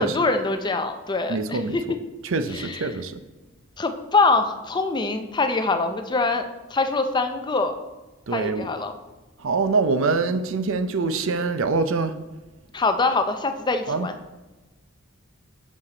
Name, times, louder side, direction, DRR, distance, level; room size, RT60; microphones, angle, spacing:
voice 1, 0.0-1.8 2.5-2.9 3.8-6.5 6.7-7.7 8.3-8.9 12.7-14.1, left 3 dB, 20° left, 0.5 m, -24 dB
voice 2, 1.3-1.8 2.2-3.2 8.3-8.7 9.4-12.1 13.9-14.1, right 4 dB, 65° right, 0.5 m, -24 dB
7.4 x 6.4 x 3.9 m
head